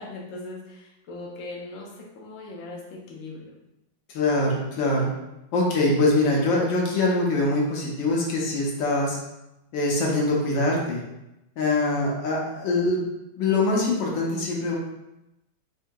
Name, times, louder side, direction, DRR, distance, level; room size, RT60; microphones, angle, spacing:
voice 1, 0.0-3.6, left 2 dB, 60° left, -3 dB, 0.9 m, -39 dB
voice 2, 4.1-5.1 5.5-9.2 9.7-11.0 11.6-13.0 13.3-14.8, left 2 dB, 80° left, -2 dB, 1.5 m, -23 dB
4.7 x 2.7 x 2.2 m, 0.91 s
omnidirectional pair, 2.1 m